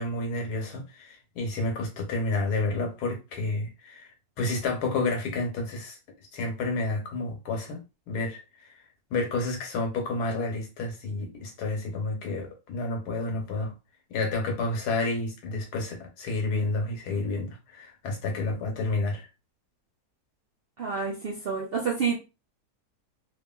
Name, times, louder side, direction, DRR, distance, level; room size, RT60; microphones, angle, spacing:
voice 1, 0.0-4.1 4.4-6.0 6.3-7.8 8.1-8.8 9.1-13.7 14.1-19.3, left 2 dB, 90° left, 1.4 m, -30 dB
voice 2, 20.8-22.2, right 5 dB, 65° right, 0.6 m, -28 dB
2.9 x 2.5 x 2.2 m
omnidirectional pair, 1.6 m